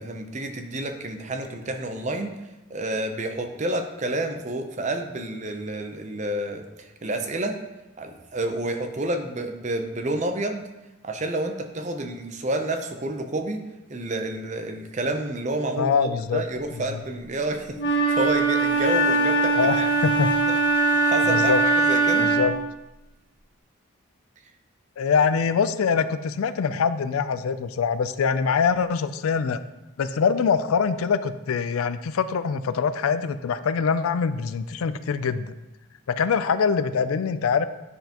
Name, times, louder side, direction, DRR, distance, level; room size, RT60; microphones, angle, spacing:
voice 1, 0.0-2.4 2.7-7.6 8.0-10.7 11.0-13.6 13.9-19.9 20.5-22.3, right 2 dB, 35° right, 5 dB, 0.6 m, -29 dB
voice 2, 15.8-16.4 19.6-20.3 21.3-21.6 22.2-22.5 25.0-29.6 30.0-35.5 36.2-37.7, left 6 dB, 90° left, 13 dB, 0.4 m, -24 dB
Wind instrument woodwind instrument, 17.8-22.6, right 3 dB, 55° left, 1.4 m, -21 dB
9.4 x 5.6 x 2.9 m, 1.0 s
head